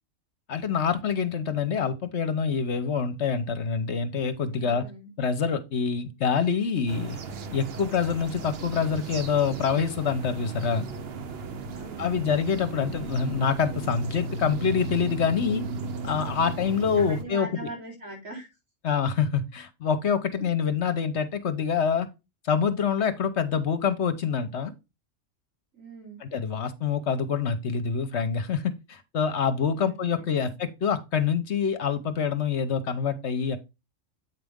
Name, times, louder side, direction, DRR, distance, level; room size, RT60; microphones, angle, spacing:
voice 1, 0.5-4.8 5.2-7.2 7.5-10.8 12.0-15.6 16.0-17.7 18.8-22.1 22.4-24.7 26.2-33.6, left 6 dB, 60° left, 1.1 m, -26 dB
voice 2, 4.4-5.1 11.7-12.3 15.5-15.6 17.0-18.5 20.3-20.4 25.7-26.2 29.7-30.5, right 1 dB, 80° right, 4.4 m, -41 dB
sound 1, 6.9-17.2, right 3 dB, 55° right, 0.9 m, -36 dB
8.3 x 5.1 x 3.5 m
omnidirectional pair, 1.4 m